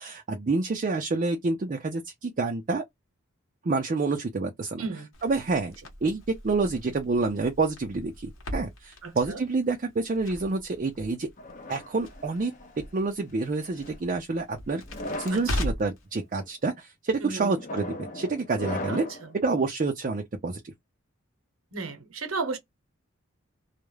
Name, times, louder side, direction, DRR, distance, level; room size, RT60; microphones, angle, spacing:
voice 1, 0.0-2.8 3.6-4.8 5.2-5.7 6.0-11.3 11.7-12.5 12.8-14.8 15.2-19.0 19.4-20.7, right 3 dB, 35° right, 0.4 m, -28 dB
Crackle, 5.1-16.0, left 1 dB, 70° left, 0.9 m, -39 dB
voice 2, 9.0-9.4 15.3-15.6 17.2-17.6 18.9-19.4 21.7-22.6, right 4 dB, 80° right, 0.8 m, -34 dB
sound 1, 11.4-12.8 13.6-14.0 14.8-15.5 16.1-16.5 17.4-19.3, left 1 dB, 35° left, 0.5 m, -38 dB
2.3 x 2.0 x 3.1 m
head